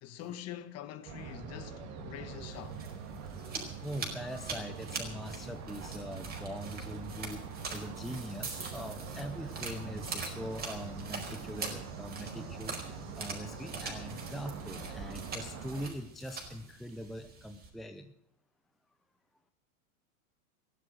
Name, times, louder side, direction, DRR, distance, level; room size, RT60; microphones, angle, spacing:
voice 1, 0.0-2.8, left 10 dB, 35° left, 1.6 m, -45 dB
sound 1, 1.0-15.9, right 5 dB, 40° right, 3.4 m, -43 dB
sound 2, 2.5-17.7, right 4 dB, 20° right, 4.8 m, -44 dB
voice 2, 3.8-7.4 7.7-18.1, equal, ahead, 0.6 m, -42 dB
15.5 x 11.5 x 6.3 m
hypercardioid pair, 125°, 42 cm